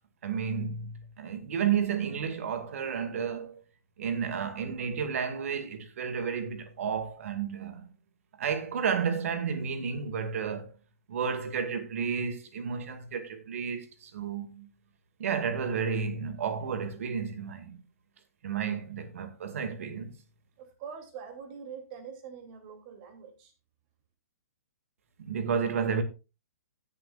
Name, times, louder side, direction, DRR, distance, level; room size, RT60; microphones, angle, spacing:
voice 1, 0.2-3.6 4.0-7.9 8.4-10.7 11.1-14.7 15.2-17.8 18.4-20.1 25.2-26.0, right 6 dB, 60° right, 2.0 m, -32 dB
voice 2, 20.6-23.5, right 7 dB, 40° right, 2.6 m, -44 dB
16.5 x 7.2 x 2.4 m
hypercardioid pair, 130°, 8 cm